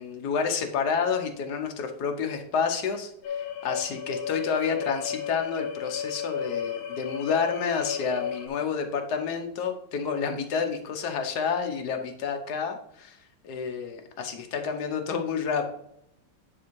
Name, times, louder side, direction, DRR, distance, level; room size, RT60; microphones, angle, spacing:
voice 1, 0.0-13.2 13.4-15.7, left 6 dB, 60° left, 5 dB, 1.4 m, -29 dB
sound 1, 3.2-8.5, left 8 dB, 85° left, 1.7 m, -33 dB
10.0 x 3.6 x 4.6 m, 0.77 s
omnidirectional pair, 2.2 m